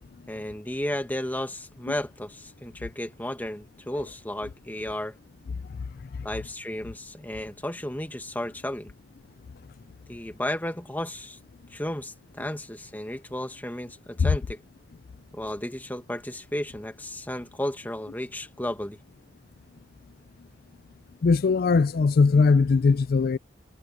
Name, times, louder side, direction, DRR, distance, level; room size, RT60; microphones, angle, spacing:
voice 1, 0.3-5.2 6.2-8.9 10.1-11.4 11.7-14.6 15.3-19.0, left 1 dB, 10° left, 1.7 m, -33 dB
voice 2, 21.2-23.4, left 4 dB, 55° left, 0.4 m, -20 dB
head